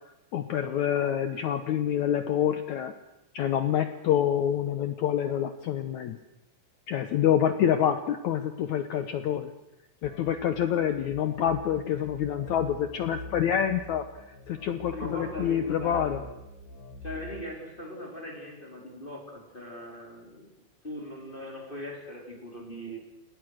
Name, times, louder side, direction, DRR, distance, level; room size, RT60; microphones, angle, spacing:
voice 1, 0.3-2.9 3.3-6.2 6.9-9.5 10.0-16.2, left 9 dB, 90° left, 10 dB, 1.6 m, -27 dB
sound 1, 10.0-17.4, left 1 dB, 60° left, 4.7 m, -44 dB
voice 2, 14.9-16.3 17.0-20.5 20.8-23.0, left 1 dB, 15° left, 1 dB, 3.7 m, -40 dB
29.0 x 19.0 x 6.5 m, 0.90 s
omnidirectional pair, 4.8 m